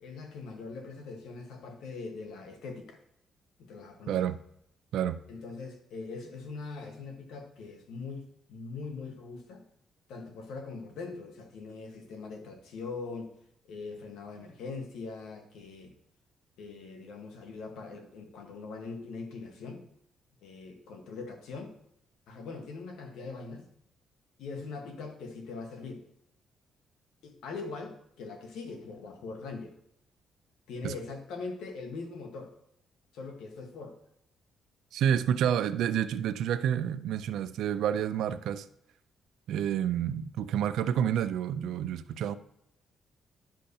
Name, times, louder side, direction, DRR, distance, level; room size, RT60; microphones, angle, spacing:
voice 1, 0.0-3.0 3.6-4.2 5.3-9.6 10.1-13.3 13.6-15.9 16.6-19.9 20.4-21.7 22.3-23.7 24.4-26.0 27.2-29.7 30.7-32.5 33.1-34.0, left 4 dB, 85° left, 4 dB, 1.3 m, -41 dB
voice 2, 4.1-4.4 4.9-5.2 30.8-30.9 34.9-38.7 39.5-42.3, right 9 dB, 80° right, 13 dB, 0.4 m, -29 dB
10.0 x 6.5 x 2.8 m, 0.74 s
cardioid pair, 90°, 0 cm